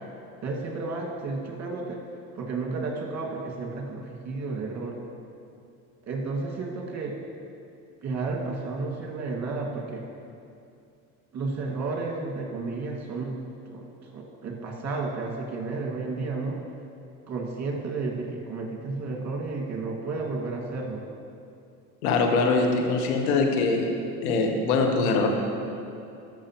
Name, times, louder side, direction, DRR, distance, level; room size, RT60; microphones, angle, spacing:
voice 1, 0.4-2.0 2.4-5.0 6.0-7.1 8.0-10.0 11.3-13.4 13.7-16.6 17.3-21.0, right 3 dB, 40° right, -1 dB, 1.9 m, -32 dB
voice 2, 22.0-23.9 24.2-25.3, left 3 dB, 85° left, 3 dB, 1.1 m, -23 dB
13.0 x 6.3 x 3.0 m, 2.6 s
hypercardioid pair, 75°, 42 cm